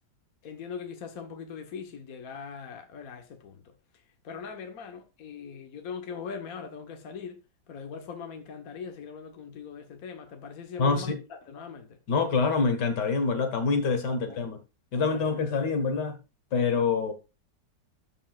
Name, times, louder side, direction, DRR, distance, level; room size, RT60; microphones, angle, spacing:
voice 1, 0.4-3.7 4.2-7.4 7.7-12.0 14.0-14.4 14.9-15.2, left 6 dB, 55° left, 1.5 m, -41 dB
voice 2, 10.8-11.2 12.1-14.6 14.9-16.2 16.5-17.1, left 4 dB, 70° left, 2.0 m, -26 dB
13.0 x 5.5 x 2.4 m
omnidirectional pair, 1.9 m